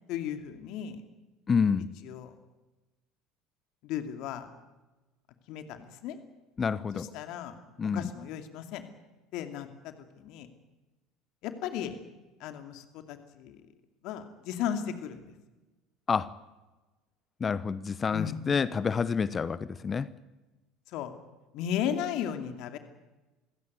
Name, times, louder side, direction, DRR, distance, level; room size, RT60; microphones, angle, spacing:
voice 1, 0.1-1.0 2.0-2.3 3.8-4.5 5.5-6.2 6.9-7.6 7.9-8.8 9.3-10.5 11.4-12.0 12.4-13.6 14.0-15.3 18.1-18.4 20.9-21.1 21.5-22.8, left 9 dB, 60° left, 7 dB, 2.6 m, -35 dB
voice 2, 1.5-1.9 6.6-7.1 7.8-8.1 16.1-16.3 17.4-20.1, left 6 dB, 30° left, 17 dB, 1.0 m, -28 dB
27.5 x 16.5 x 9.6 m, 1.1 s
hypercardioid pair, 70°, 0 cm